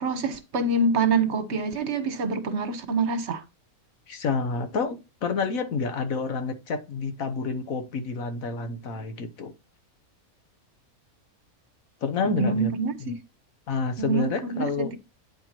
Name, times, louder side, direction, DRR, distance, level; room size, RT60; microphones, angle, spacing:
voice 1, 0.0-3.4 12.2-13.2 14.0-15.0, right 3 dB, 55° right, 1.2 m, -26 dB
voice 2, 4.1-9.5 12.0-12.7 13.0-13.1 13.7-14.9, left 4 dB, 70° left, 1.5 m, -29 dB
9.5 x 4.5 x 4.4 m
omnidirectional pair, 1.5 m